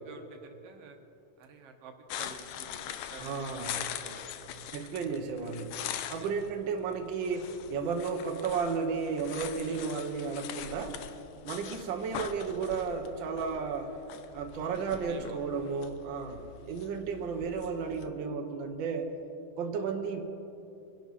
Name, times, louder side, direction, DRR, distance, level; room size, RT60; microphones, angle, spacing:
voice 1, 0.0-1.0 1.4-4.6 6.2-6.3 11.7-12.1 15.1-15.4 17.1-17.2, right 4 dB, 60° right, 4 dB, 1.7 m, -50 dB
Walk snow and pond forage, 2.1-18.1, left 10 dB, 80° left, 1.5 m, -43 dB
voice 2, 3.2-3.8 4.7-5.8 6.1-11.0 11.4-13.9 14.3-19.1 19.6-20.2, right 5 dB, 80° right, 3 dB, 1.0 m, -33 dB
24.0 x 11.5 x 4.1 m, 2.9 s
omnidirectional pair, 3.8 m